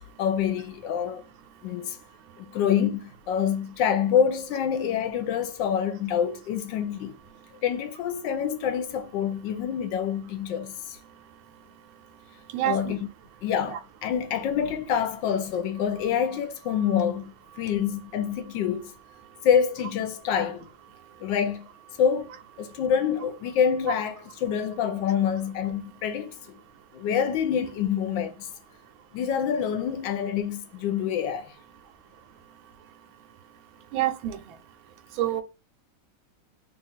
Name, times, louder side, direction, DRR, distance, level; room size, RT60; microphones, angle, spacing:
voice 1, 0.2-1.2 1.6-2.0 2.4-7.2 7.6-11.0 12.6-13.1 13.4-18.9 19.4-20.7 21.2-21.7 22.0-22.3 22.6-26.6 26.9-28.5 29.1-31.5, left 8 dB, 75° left, 1.2 m, -26 dB
voice 2, 12.5-13.0 13.7-13.8 33.9-34.4 35.2-35.4, right 13 dB, 85° right, 1.4 m, -27 dB
3.3 x 2.4 x 4.1 m
omnidirectional pair, 2.2 m